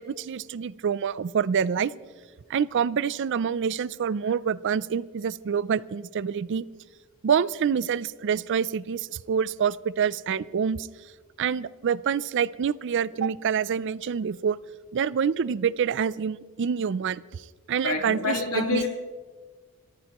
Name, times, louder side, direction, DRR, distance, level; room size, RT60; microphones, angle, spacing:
voice 1, 0.0-1.9 2.5-6.7 7.2-10.9 11.4-14.6 14.9-18.9, right 7 dB, 55° right, 19 dB, 0.4 m, -27 dB
voice 2, 17.8-18.9, left 3 dB, 75° left, 1 dB, 2.9 m, -27 dB
28.5 x 14.5 x 3.0 m, 1.5 s
head